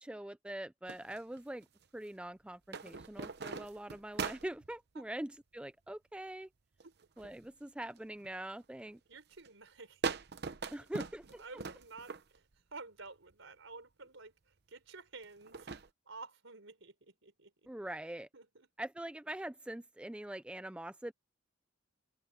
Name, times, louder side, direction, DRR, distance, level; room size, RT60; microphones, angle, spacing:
voice 1, 0.0-1.7 1.9-6.5 7.2-9.0 10.7-11.6 17.7-18.3 18.8-21.1, right 1 dB, 5° right, 0.3 m, -43 dB
sound 1, 0.9-1.8 2.7-4.7 6.8-7.5 7.9-8.3 8.9-9.1 9.5-9.6 10.0-12.5 13.3-13.4 15.2-15.9, right 4 dB, 55° right, 0.8 m, -41 dB
voice 2, 9.1-10.0 10.6-10.7 11.4-12.4 12.7-14.3 14.7-15.7 16.1-17.5 18.3-18.7, right 3 dB, 75° right, 4.2 m, -51 dB
head